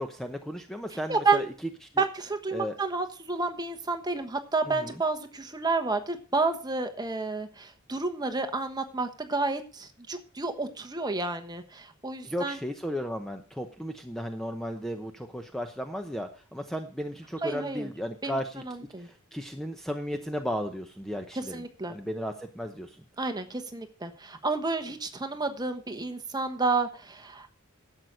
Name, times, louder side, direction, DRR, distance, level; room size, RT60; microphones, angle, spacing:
voice 1, 0.0-1.5 1.9-2.0 2.5-2.8 4.7-5.0 12.2-18.6 19.0-21.6 21.9-22.9, equal, ahead, 5 dB, 0.8 m, -35 dB
voice 2, 1.1-1.5 2.0-12.6 17.4-17.9 18.2-18.4 18.7-19.1 21.5-21.9 23.2-27.5, right 3 dB, 20° right, 7 dB, 1.2 m, -30 dB
11.5 x 8.0 x 6.2 m, 0.38 s
head